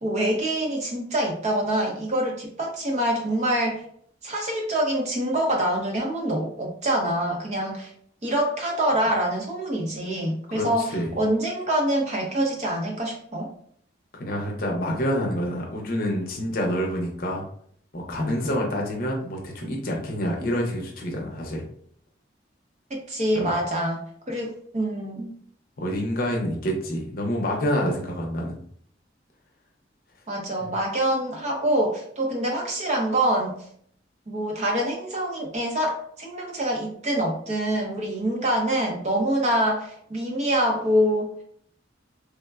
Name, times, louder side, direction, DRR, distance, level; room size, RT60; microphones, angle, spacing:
voice 1, 0.0-3.8 4.2-7.9 8.2-10.9 11.2-13.5 22.9-24.0 24.3-25.3 30.3-33.5 34.3-41.3, right 1 dB, 35° right, 0 dB, 0.6 m, -25 dB
voice 2, 10.5-11.1 14.1-17.4 17.9-21.6 23.3-23.6 25.8-28.6, equal, 50° left, 0 dB, 0.6 m, -27 dB
3.4 x 2.1 x 2.3 m, 0.63 s
head